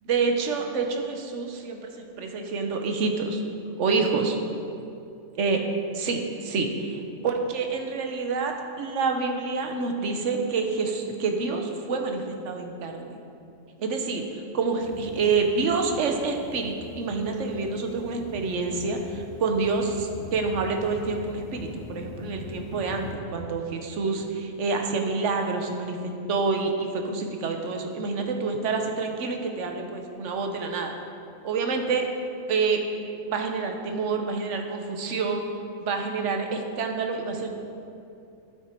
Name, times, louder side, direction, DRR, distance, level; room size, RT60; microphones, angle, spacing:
voice 1, 0.0-3.4 3.8-4.4 5.4-5.6 5.9-13.2 13.8-30.9 31.4-32.0 32.5-32.8 33.3-35.5 35.8-37.5, right 4 dB, 65° right, 3 dB, 1.1 m, -27 dB
sound 1, 14.8-23.2, left 3 dB, 80° left, 1.2 m, -42 dB
12.5 x 4.5 x 4.4 m, 2.6 s
omnidirectional pair, 1.4 m